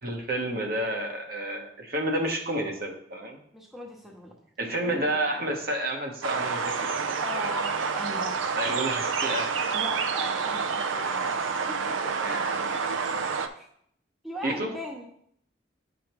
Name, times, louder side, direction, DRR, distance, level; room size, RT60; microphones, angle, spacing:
voice 1, 0.0-3.4 4.6-6.9 8.6-9.5 12.2-12.8 14.4-14.7, right 1 dB, 50° right, 3 dB, 1.0 m, -30 dB
voice 2, 3.5-4.4 7.2-8.4 9.7-11.4 11.7-12.4 13.6-13.7 14.2-15.1, equal, ahead, 0 dB, 0.7 m, -39 dB
sound 1, 6.2-13.5, right 5 dB, 80° right, 0.5 m, -28 dB
9.0 x 5.0 x 3.0 m, 0.68 s
head